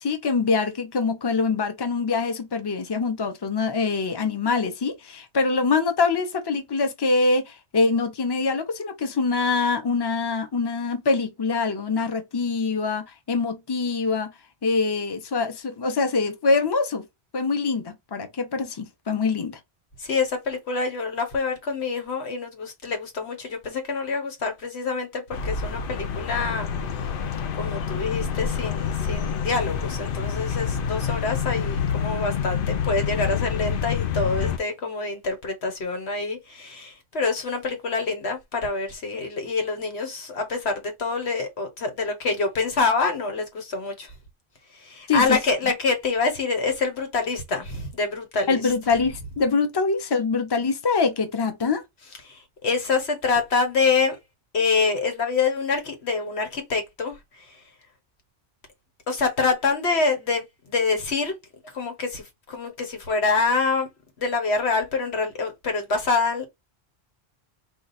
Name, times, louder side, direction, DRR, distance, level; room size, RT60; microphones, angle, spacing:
voice 1, 0.0-14.3 14.6-17.0 17.3-19.6 45.1-45.4 48.5-51.8, left 4 dB, 25° left, 0.7 m, -24 dB
voice 2, 20.0-26.7 27.5-44.1 44.8-48.6 52.2-54.2 54.5-57.1 59.1-61.3 61.7-63.9 64.2-66.4, left 4 dB, 90° left, 1.5 m, -26 dB
sound 1, 25.3-34.6, left 7 dB, 60° left, 0.8 m, -27 dB
4.8 x 2.4 x 4.0 m
omnidirectional pair, 1.1 m